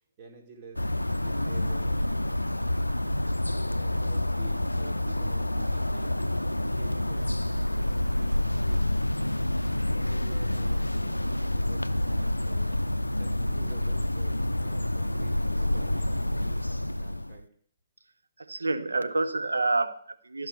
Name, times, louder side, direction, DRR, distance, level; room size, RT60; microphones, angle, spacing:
voice 1, 0.2-0.9 1.2-2.0 3.7-6.3 6.6-7.3 7.8-8.8 9.7-12.7 13.2-17.5, right 4 dB, 35° right, 2 dB, 2.0 m, -49 dB
sound 1, 0.8-17.4, left 1 dB, 85° left, 0.3 m, -28 dB
voice 2, 18.4-20.5, right 3 dB, 70° right, 10 dB, 0.8 m, -28 dB
13.0 x 5.5 x 6.5 m, 0.62 s
figure-of-eight pair, 125°, 0 cm